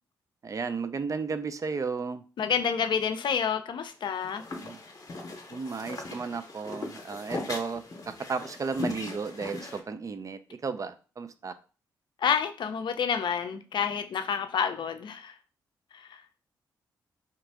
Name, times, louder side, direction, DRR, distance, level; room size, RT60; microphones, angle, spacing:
voice 1, 0.4-2.2 4.6-4.8 5.5-11.5, right 5 dB, 40° right, 11 dB, 0.4 m, -34 dB
voice 2, 2.4-4.4 12.2-15.3 15.9-16.0, left 7 dB, 60° left, 9 dB, 0.5 m, -28 dB
sound 1, 4.0-9.8, left 3 dB, 45° left, 0.8 m, -39 dB
2.9 x 2.4 x 3.5 m, 0.36 s
supercardioid pair, 50°, 9 cm